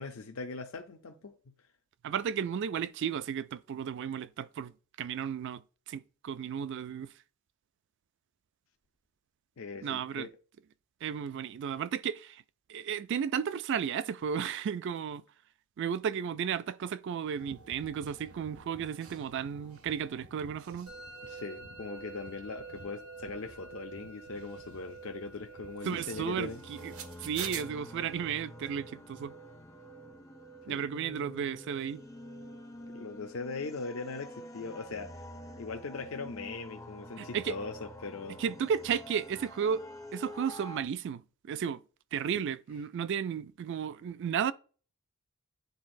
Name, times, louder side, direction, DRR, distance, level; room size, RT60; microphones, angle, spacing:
voice 1, 0.0-1.3 9.6-10.3 21.2-26.6 30.7-30.9 32.9-35.3 35.6-38.4 42.3-42.4, left 4 dB, 65° left, 0.5 m, -40 dB
voice 2, 2.0-4.7 5.0-5.6 5.9-7.1 9.8-10.3 11.0-12.4 12.7-15.2 15.8-20.9 25.8-26.9 27.2-29.3 30.7-32.0 37.2-37.5 38.4-39.8 40.1-41.2 41.5-41.8 42.1-44.5, right 7 dB, 55° right, 0.3 m, -33 dB
Wind howl minor, 17.3-27.6, right 5 dB, 70° right, 0.8 m, -49 dB
Musical instrument, 20.9-39.8, right 4 dB, 85° right, 1.4 m, -52 dB
sound 1, 26.1-40.8, left 1 dB, 15° left, 0.4 m, -48 dB
9.4 x 3.9 x 2.6 m
head